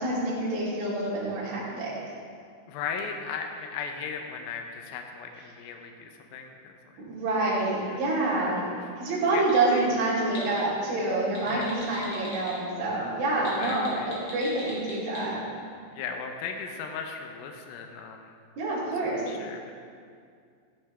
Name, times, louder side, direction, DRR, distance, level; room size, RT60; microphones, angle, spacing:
voice 1, 0.0-1.9 7.0-8.7 9.0-15.4 18.6-19.2, right 2 dB, 70° right, -8 dB, 4.6 m, -27 dB
voice 2, 2.7-6.7 9.3-9.4 9.7-9.9 11.5-11.8 13.4-14.1 15.9-18.4 19.3-19.7, left 6 dB, 80° left, 4 dB, 2.5 m, -37 dB
sound 1, 9.3-9.6 10.1-10.6 11.2-12.5 13.3-15.2, left 1 dB, 35° left, 2.8 m, -41 dB
13.5 x 10.0 x 3.3 m, 2.2 s
omnidirectional pair, 4.4 m